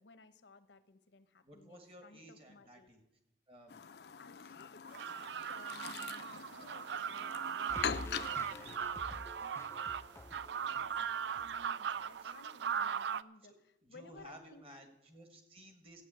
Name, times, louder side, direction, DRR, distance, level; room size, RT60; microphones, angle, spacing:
voice 1, 0.0-2.9 4.2-5.1 5.5-9.1 10.1-11.1 11.4-14.6, left 3 dB, 90° left, 11 dB, 0.9 m, -59 dB
voice 2, 1.4-3.0 3.5-3.8 4.4-4.5 10.6-11.5 12.2-12.3 13.4-13.6 13.8-16.0, equal, 35° right, 5 dB, 1.8 m, -56 dB
Chirp tweet, 3.7-8.8, left 7 dB, 70° left, 0.5 m, -43 dB
sound 1, 4.9-13.2, right 7 dB, 80° right, 0.4 m, -39 dB
sound 2, 7.7-11.7 12.0-12.1, left 1 dB, 15° left, 0.4 m, -49 dB
13.5 x 8.8 x 7.7 m, 0.90 s
head